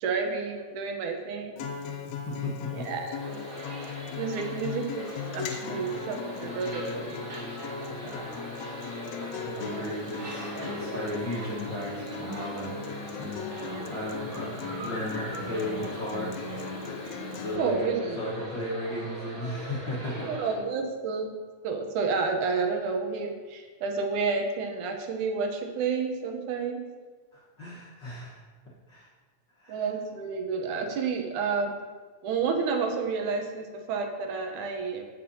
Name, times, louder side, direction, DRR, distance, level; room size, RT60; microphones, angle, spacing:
voice 1, 0.0-1.7 2.7-3.4 4.1-7.2 13.7-13.9 17.6-18.2 20.3-21.3 21.6-26.8 29.7-31.7 32.2-35.0, right 4 dB, 80° right, 3 dB, 2.4 m, -30 dB
Acoustic guitar, 1.6-17.6, left 5 dB, 75° left, 1.7 m, -38 dB
voice 2, 2.1-2.8 8.0-8.2 9.4-16.3 17.4-20.3 27.3-28.4 28.9-29.1 29.6-29.8, left 1 dB, 45° left, -6 dB, 1.6 m, -36 dB
sound 1, 3.2-20.6, equal, 50° right, 0.6 m, -40 dB
15.5 x 6.1 x 2.8 m, 1.5 s
omnidirectional pair, 3.6 m